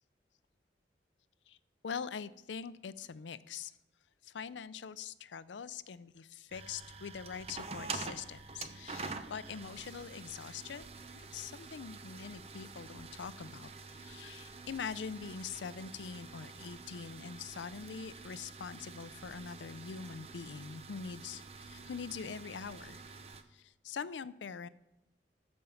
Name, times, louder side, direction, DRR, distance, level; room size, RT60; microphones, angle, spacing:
voice 1, 1.8-3.8 4.2-10.9 11.1-23.0 23.5-24.7, left 6 dB, 90° left, 16 dB, 0.5 m, -43 dB
sound 1, 6.5-23.4, right 4 dB, 35° right, 0.7 m, -47 dB
13.0 x 5.4 x 7.1 m, 0.95 s
head